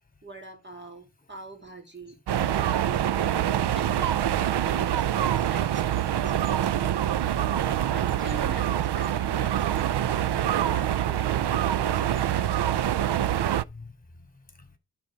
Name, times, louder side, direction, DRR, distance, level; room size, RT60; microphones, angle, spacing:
voice 1, 0.2-2.2 2.5-3.2 3.7-7.1 7.9-12.9, right 2 dB, 25° right, 2.4 m, -44 dB
sound 1, 2.3-13.6, right 11 dB, 90° right, 0.5 m, -25 dB
voice 2, 5.6-6.1 7.3-7.4 8.2-8.3 10.2-10.3 11.4-11.5 12.1-12.2 13.6-14.8, left 3 dB, 20° left, 3.0 m, -50 dB
11.5 x 4.2 x 6.2 m
wide cardioid pair, 75°, 39 cm